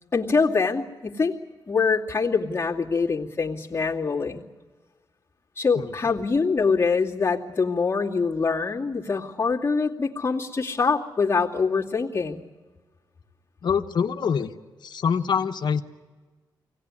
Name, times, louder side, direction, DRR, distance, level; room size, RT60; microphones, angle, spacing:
voice 1, 0.1-1.3 1.7-4.4 5.6-12.4, left 4 dB, 30° left, -5 dB, 2.4 m, -24 dB
voice 2, 5.7-6.2 13.6-14.5 14.8-15.8, left 6 dB, 65° left, 6 dB, 1.0 m, -25 dB
24.0 x 17.5 x 9.8 m, 1.4 s
wide cardioid pair, 110°, 8 cm